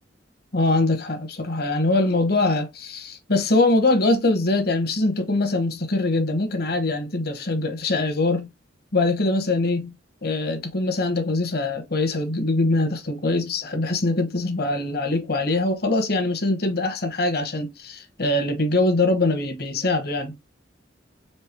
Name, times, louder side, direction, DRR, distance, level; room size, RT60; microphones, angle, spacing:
voice 1, 0.5-8.5 8.9-9.9 10.2-20.5, left 2 dB, 55° left, 1.0 m, -23 dB
4.4 x 3.2 x 3.4 m
head